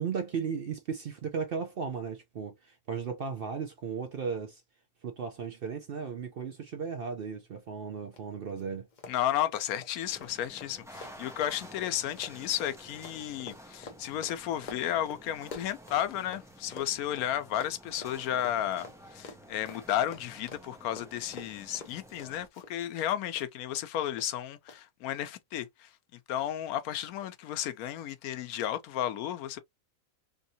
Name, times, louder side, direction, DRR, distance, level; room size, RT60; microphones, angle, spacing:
voice 1, 0.0-4.6 5.0-8.9, right 6 dB, 60° right, 0.6 m, -35 dB
Run, 8.1-8.2 8.5-8.6 8.9-16.4 16.7-23.1 23.3-23.8 24.2-24.3 24.7-24.8, left 4 dB, 40° left, 0.7 m, -47 dB
voice 2, 9.1-18.9 19.1-25.9 26.3-29.6, left 11 dB, 90° left, 1.1 m, -33 dB
sound 1, 10.0-22.5, equal, 5° right, 0.5 m, -51 dB
3.4 x 2.6 x 2.6 m
omnidirectional pair, 1.5 m